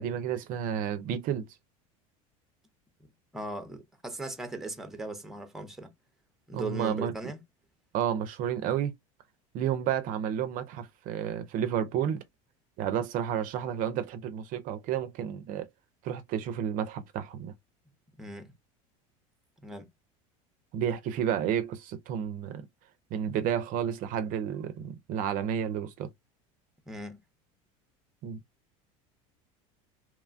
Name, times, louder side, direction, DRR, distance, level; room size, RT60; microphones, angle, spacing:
voice 1, 0.0-1.5 6.5-7.1 7.9-8.9 9.5-12.2 12.8-15.7 16.0-17.5 20.7-22.6 23.1-26.1 28.2-28.4, right 9 dB, 50° right, 0.5 m, -31 dB
voice 2, 3.3-5.9 6.5-7.4 18.2-18.5 19.6-19.9 26.9-27.2, right 2 dB, ahead, 0.6 m, -38 dB
2.9 x 2.2 x 2.4 m
supercardioid pair, 115°, 17 cm